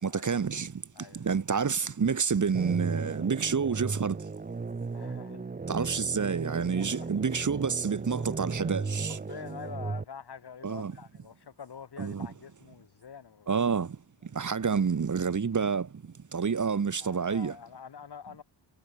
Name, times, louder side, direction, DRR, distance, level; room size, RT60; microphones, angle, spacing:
voice 1, 0.0-0.7 1.1-4.2 5.7-9.2 10.6-10.9 12.0-12.3 13.5-14.0 14.3-15.9 16.3-17.6, right 6 dB, 40° right, 2.3 m, -28 dB
voice 2, 0.9-1.3 4.9-5.5 6.8-7.1 9.1-13.5 17.0-18.4, left 7 dB, 55° left, 6.7 m, -46 dB
sound 1, 2.5-10.0, right 4 dB, 20° right, 0.8 m, -35 dB
wide cardioid pair, 150°, 47 cm